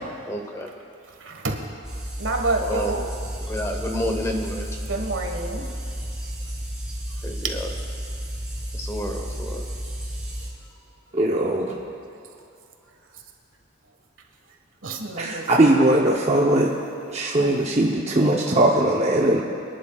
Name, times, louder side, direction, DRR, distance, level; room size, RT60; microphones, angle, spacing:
voice 1, 0.3-0.7 2.6-2.9 3.5-4.7 7.2-7.6 8.8-9.6, equal, 15° left, 2 dB, 1.0 m, -29 dB
voice 2, 1.2-1.6 2.2-3.1 4.9-5.6 11.7-11.8 14.8-15.4 17.4-17.5, right 2 dB, 75° right, 2 dB, 1.5 m, -27 dB
sound 1, 1.8-10.5, equal, 5° right, 2.7 m, -32 dB
voice 3, 11.1-11.7 15.2-16.7 17.1-19.4, right 1 dB, 30° right, -2 dB, 0.8 m, -20 dB
26.5 x 11.0 x 2.4 m, 2.5 s
head